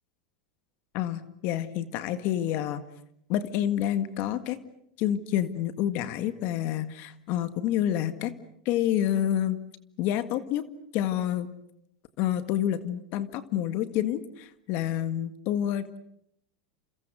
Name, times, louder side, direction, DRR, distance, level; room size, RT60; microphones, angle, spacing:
voice 1, 0.9-2.8 3.3-4.6 5.0-8.3 8.7-9.6 10.0-10.6 10.9-11.5 12.2-16.0, left 11 dB, 55° left, 11 dB, 1.8 m, -28 dB
29.5 x 27.5 x 6.4 m, 0.75 s
supercardioid pair, 120°, 4 cm